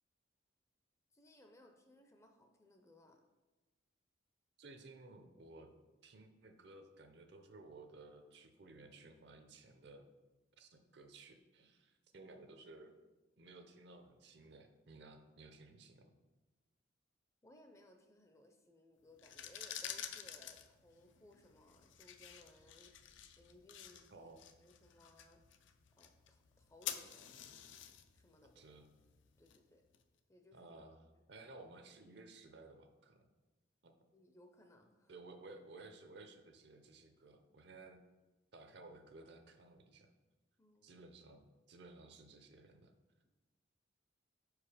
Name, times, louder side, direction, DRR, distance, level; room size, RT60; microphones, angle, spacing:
voice 1, 1.1-3.2 12.1-12.2 17.4-23.1 23.4-24.3 24.6-25.4 26.0-27.3 28.1-28.6 29.4-29.8 30.3-30.7 31.1-31.3 34.1-35.1 40.6-40.9, left 1 dB, 15° left, 4 dB, 0.5 m, -64 dB
voice 2, 4.6-5.7 6.0-10.1 10.6-12.9 13.4-16.1 24.1-24.5 28.6-28.9 30.5-33.2 33.8-33.9 35.1-38.0 38.5-40.1 40.8-42.9, right 2 dB, 60° right, 7 dB, 0.6 m, -57 dB
sound 1, 19.1-30.0, left 10 dB, 70° left, 0.4 m, -50 dB
5.3 x 4.8 x 4.9 m, 1.2 s
head